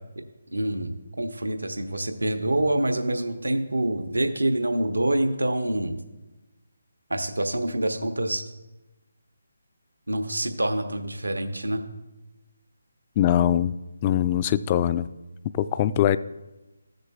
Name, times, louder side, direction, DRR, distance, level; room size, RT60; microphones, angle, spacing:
voice 1, 0.5-0.9 1.2-6.0 7.1-8.4 10.1-11.8, right 1 dB, 80° right, 7 dB, 0.9 m, -26 dB
voice 2, 13.2-13.7 14.0-15.1 15.5-16.2, left 11 dB, 25° left, 14 dB, 0.3 m, -22 dB
14.0 x 6.6 x 2.4 m, 1.1 s
figure-of-eight pair, 150°, 0 cm